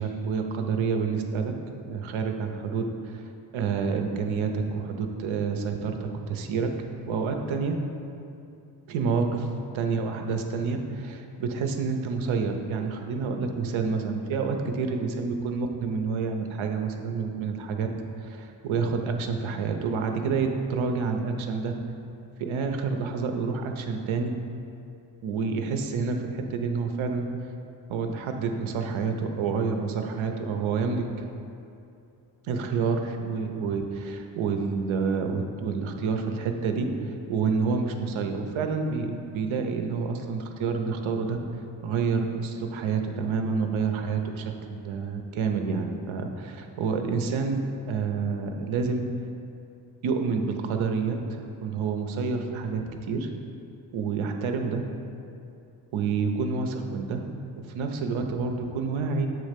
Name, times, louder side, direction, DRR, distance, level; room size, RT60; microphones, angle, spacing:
voice 1, 0.0-1.5 1.8-3.2 3.5-6.7 7.1-7.7 8.9-9.5 9.7-17.9 18.2-21.7 22.4-24.3 25.2-27.2 27.9-31.0 32.4-36.8 37.3-41.4 41.8-47.6 47.9-49.0 50.0-53.3 53.9-54.8 55.9-57.2 57.6-59.3, right 5 dB, 80° right, 4 dB, 0.7 m, -28 dB
7.5 x 3.2 x 5.1 m, 2.6 s
cardioid pair, 85°, 47 cm